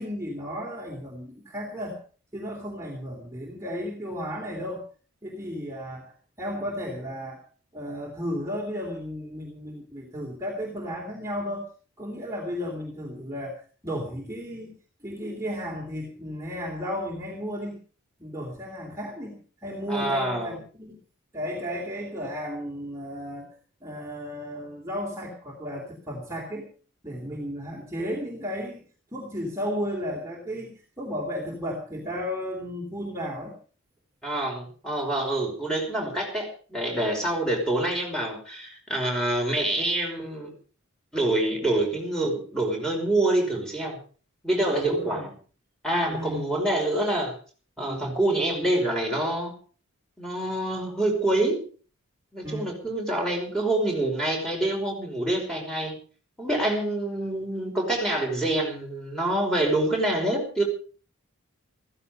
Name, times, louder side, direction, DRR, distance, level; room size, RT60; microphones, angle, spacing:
voice 1, 0.0-2.0 2.3-4.8 5.2-6.1 6.4-7.4 7.7-11.6 12.0-14.7 15.0-17.8 18.2-21.0 21.3-23.5 23.8-26.7 27.0-28.8 29.1-33.5 44.7-45.3 46.1-46.4 47.8-48.2 52.4-52.7, equal, 15° right, -2 dB, 3.0 m, -34 dB
voice 2, 19.9-20.6 34.2-40.5 41.1-44.0 44.4-45.3 45.8-47.3 47.8-49.5 50.2-51.6 52.3-56.0 56.4-60.6, right 1 dB, 5° left, 1 dB, 5.4 m, -26 dB
15.5 x 15.0 x 5.3 m, 0.40 s
head